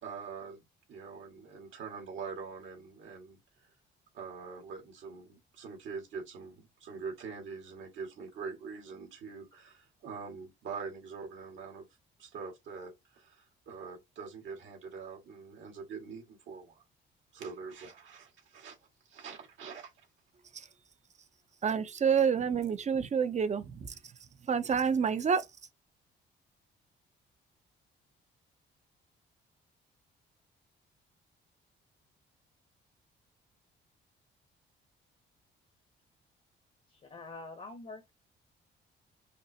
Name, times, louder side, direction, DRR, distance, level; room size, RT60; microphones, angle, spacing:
voice 1, 0.0-0.6 0.9-3.7 4.1-11.9 12.2-16.8 17.3-18.8 19.1-19.9, right 5 dB, 75° right, 1.8 m, -44 dB
voice 2, 21.6-23.9 24.5-25.5, right 6 dB, 35° right, 0.6 m, -28 dB
voice 3, 36.9-38.1, left 3 dB, 35° left, 0.8 m, -45 dB
5.1 x 2.1 x 2.7 m
cardioid pair, 90°, 20 cm